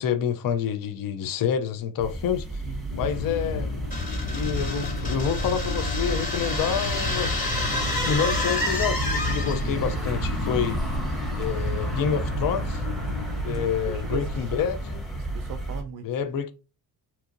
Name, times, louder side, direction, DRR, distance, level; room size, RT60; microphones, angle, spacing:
voice 1, 0.0-2.6 3.0-3.7 4.3-10.8 11.4-12.8 13.4-15.0 16.0-16.5, left 7 dB, 50° left, 0.5 m, -28 dB
sound 1, 2.0-15.8, right 1 dB, ahead, 0.8 m, -32 dB
sound 2, 2.9-13.4, left 3 dB, 90° left, 0.7 m, -32 dB
sound 3, 3.9-9.8, left 2 dB, 15° left, 1.2 m, -30 dB
voice 2, 13.4-14.2 15.2-16.1, right 7 dB, 50° right, 0.4 m, -39 dB
2.9 x 2.4 x 2.4 m
cardioid pair, 75°, 46 cm